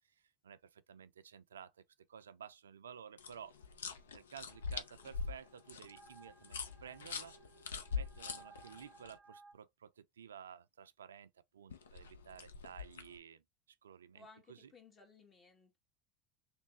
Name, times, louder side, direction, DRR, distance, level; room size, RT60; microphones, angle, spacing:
voice 1, 0.4-1.7 2.1-3.5 4.1-7.4 7.9-13.4 13.8-14.7, right 8 dB, 90° right, 0.3 m, -53 dB
sound 1, 3.2-9.1 11.7-13.2, left 5 dB, 85° left, 0.6 m, -43 dB
sound 2, 4.5-9.5, right 4 dB, 10° right, 1.0 m, -61 dB
voice 2, 14.1-15.8, left 4 dB, 35° left, 1.8 m, -60 dB
3.2 x 3.2 x 2.7 m
hypercardioid pair, 85°, 0 cm